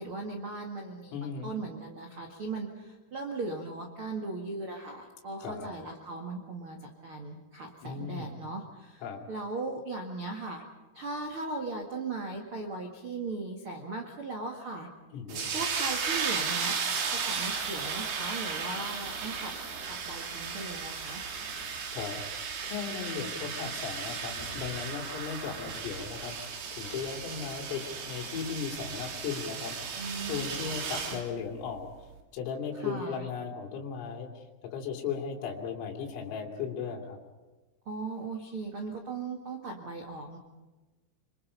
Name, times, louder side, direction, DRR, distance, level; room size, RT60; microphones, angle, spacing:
voice 1, 0.0-9.0 9.3-10.6 10.9-14.9 15.5-16.8 17.1-19.5 19.9-21.2 30.0-31.2 32.7-33.3 37.8-40.4, right 3 dB, 90° right, 2 dB, 1.1 m, -38 dB
voice 2, 1.1-1.5 5.4-5.7 7.8-8.3 9.0-9.3 15.1-15.5 21.9-32.1 32.3-37.2, left 6 dB, 80° left, 1 dB, 5.3 m, -37 dB
sound 1, 15.3-31.2, right 6 dB, 55° right, 4.2 m, -35 dB
sound 2, 16.8-30.4, right 1 dB, 40° right, 9.7 m, -55 dB
26.5 x 25.0 x 5.6 m, 1.2 s
omnidirectional pair, 5.9 m